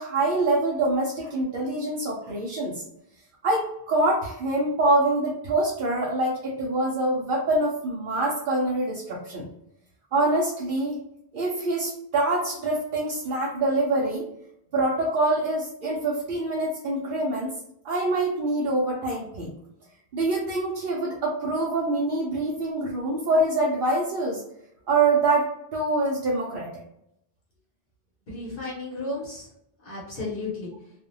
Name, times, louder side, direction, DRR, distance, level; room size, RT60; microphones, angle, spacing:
voice 1, 0.0-2.8 3.4-9.5 10.1-11.0 11.3-14.2 14.7-17.5 17.8-19.5 20.1-24.4 24.9-26.7, right 2 dB, 60° right, -4 dB, 0.7 m, -25 dB
voice 2, 28.3-29.5 29.8-30.7, left 2 dB, 60° left, -5 dB, 1.0 m, -33 dB
2.4 x 2.1 x 2.6 m, 0.76 s
omnidirectional pair, 1.1 m